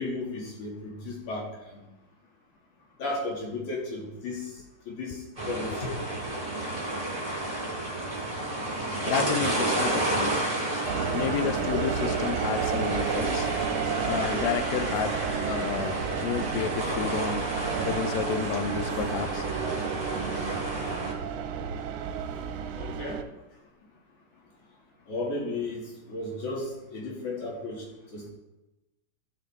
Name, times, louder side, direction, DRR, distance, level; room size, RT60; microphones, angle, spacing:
voice 1, 0.0-1.8 3.0-4.5 4.9-5.2 5.5-6.0 22.8-23.2 25.1-27.8 28.1-28.3, left 2 dB, 65° left, -3 dB, 3.8 m, -34 dB
sound 1, 5.4-21.1, right 1 dB, 15° right, 2.6 m, -31 dB
voice 2, 5.9-6.5 9.1-10.4 11.1-13.5 14.1-15.1 15.4-17.5 17.8-19.5, left 10 dB, 80° left, 10 dB, 1.6 m, -31 dB
sound 2, 10.9-23.2, right 8 dB, 75° right, 2.0 m, -32 dB
15.5 x 6.9 x 3.6 m, 1.0 s
omnidirectional pair, 3.8 m